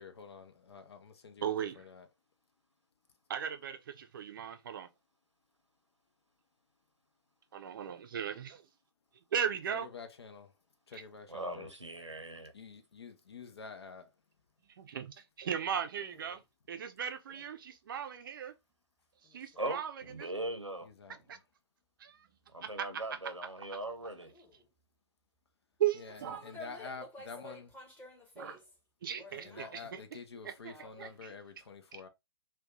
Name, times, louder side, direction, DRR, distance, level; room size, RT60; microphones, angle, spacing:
voice 1, 0.0-2.1 9.7-10.5 10.9-11.7 12.5-14.1 20.8-21.2 26.0-27.7 29.3-32.1, left 5 dB, 60° left, 0.7 m, -48 dB
voice 2, 1.4-1.8 3.3-4.9 7.5-8.6 9.3-9.9 10.9-11.0 14.8-16.4 16.7-18.5 19.3-20.3 21.3-21.4 22.0-22.3 22.6-22.7 25.8-26.4 28.4-28.6 29.0-30.0 30.4-31.3 31.9-32.0, right 9 dB, 45° right, 0.5 m, -37 dB
voice 3, 11.3-12.5 19.6-20.9 22.5-24.3, right 1 dB, 90° right, 0.8 m, -40 dB
voice 4, 16.0-16.4 17.3-17.4 19.2-19.6 24.2-24.7 26.1-28.7 29.2-29.8 30.7-31.2, left 2 dB, 10° left, 1.1 m, -51 dB
2.6 x 2.3 x 3.6 m
figure-of-eight pair, 120°, 15 cm